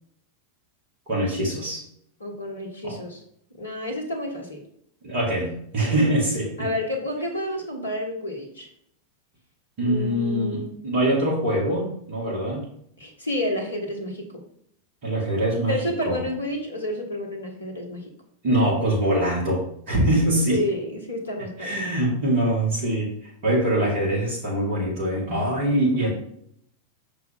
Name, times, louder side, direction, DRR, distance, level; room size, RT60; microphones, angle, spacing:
voice 1, 1.1-1.8 2.8-3.0 5.0-6.7 9.8-12.7 15.0-15.7 16.1-16.2 18.4-20.6 21.6-26.1, right 1 dB, 50° right, -5 dB, 2.5 m, -23 dB
voice 2, 2.2-3.2 3.6-4.6 5.8-6.1 6.6-8.7 9.8-10.8 13.0-14.4 15.7-18.0 20.5-21.8, left 1 dB, 75° left, 2 dB, 1.5 m, -30 dB
6.0 x 4.6 x 3.8 m, 0.68 s
figure-of-eight pair, 90°, 0 cm